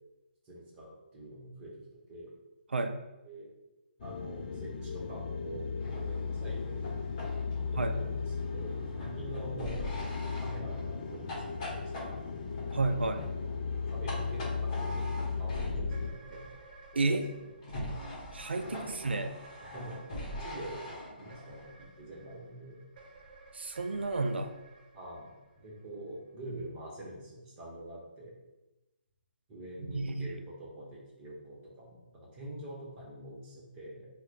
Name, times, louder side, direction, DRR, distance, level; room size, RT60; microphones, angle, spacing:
voice 1, 0.4-1.8 2.1-2.3 3.2-3.5 4.0-7.0 7.5-9.8 10.4-12.1 13.9-15.1 15.4-16.5 16.9-17.0 18.6-19.1 19.6-22.8 24.9-28.3 29.5-34.1, right 1 dB, 20° right, -5 dB, 1.0 m, -46 dB
sound 1, 4.0-16.1, left 5 dB, 50° left, 0.4 m, -36 dB
sound 2, 5.8-16.1 17.6-21.7, left 1 dB, 30° left, 1.1 m, -43 dB
voice 2, 12.7-13.2 17.0-17.3 18.3-19.4 23.5-24.5 29.9-30.4, right 3 dB, 85° right, 7 dB, 0.4 m, -31 dB
sound 3, 15.9-26.3, right 3 dB, 50° right, 0.8 m, -55 dB
2.9 x 2.1 x 3.8 m, 1.0 s
hypercardioid pair, 150°, 6 cm